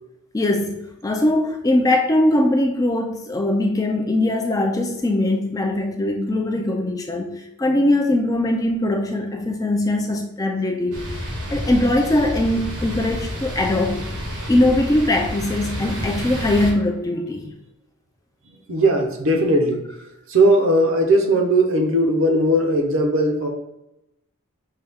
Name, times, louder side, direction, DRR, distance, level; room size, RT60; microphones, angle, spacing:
voice 1, 0.3-11.1 11.5-14.1 14.5-17.5, left 1 dB, 15° left, 3 dB, 0.3 m, -21 dB
sound 1, 10.9-16.7, equal, 85° right, 1.2 m, -29 dB
voice 2, 18.4-19.9 20.3-23.5, right 1 dB, 60° right, 3 dB, 0.7 m, -18 dB
5.5 x 2.3 x 3.4 m, 0.91 s
head